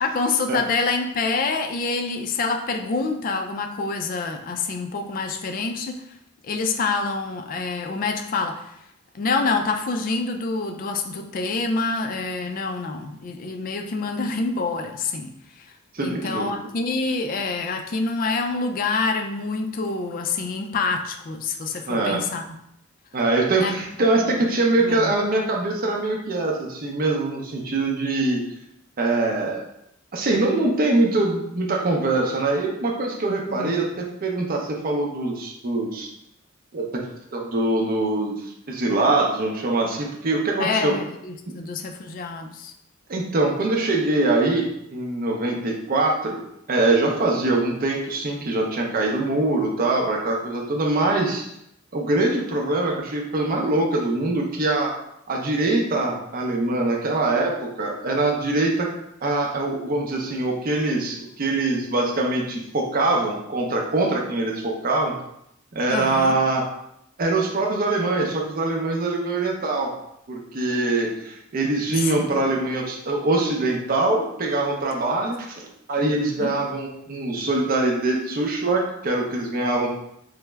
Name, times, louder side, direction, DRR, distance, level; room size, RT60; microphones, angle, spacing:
voice 1, 0.0-6.0 6.4-8.6 9.1-15.3 16.0-22.5 23.5-23.8 24.2-24.3 24.8-25.1 33.5-33.8 40.6-42.7 65.9-66.4 72.0-72.4 76.4-76.5, left 4 dB, 40° left, 4 dB, 0.3 m, -26 dB
voice 2, 15.9-16.5 21.9-22.2 23.1-28.4 29.0-29.6 30.1-36.1 36.7-36.8 37.3-38.4 38.7-40.9 41.5-41.6 43.1-44.6 44.9-46.4 46.7-51.4 51.9-54.9 55.3-58.9 59.2-65.1 65.7-66.6 67.2-69.9 70.3-79.9, right 2 dB, 45° right, 0 dB, 0.5 m, -23 dB
3.3 x 2.0 x 3.3 m, 0.79 s
head